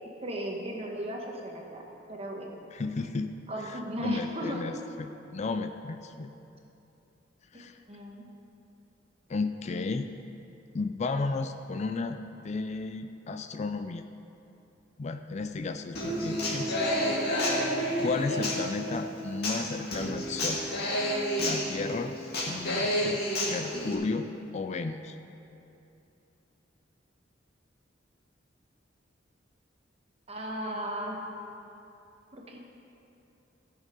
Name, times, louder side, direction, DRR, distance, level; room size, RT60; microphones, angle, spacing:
voice 1, 0.2-1.8 2.1-2.6 3.5-4.6 7.5-8.3 18.3-18.6 30.3-31.2 32.3-32.6, right 1 dB, 35° right, 0 dB, 1.4 m, -36 dB
voice 2, 2.7-3.3 3.7-4.7 5.0-6.3 7.5-7.8 9.3-10.1 10.7-12.2 12.4-14.0 15.0-17.0 18.0-20.6 21.4-22.2 22.5-23.2 23.5-24.3 24.5-25.2, left 3 dB, 35° left, 8 dB, 0.4 m, -33 dB
Human voice / Acoustic guitar, 15.9-23.9, equal, 55° left, 2.3 m, -30 dB
16.0 x 6.4 x 5.3 m, 2.8 s
head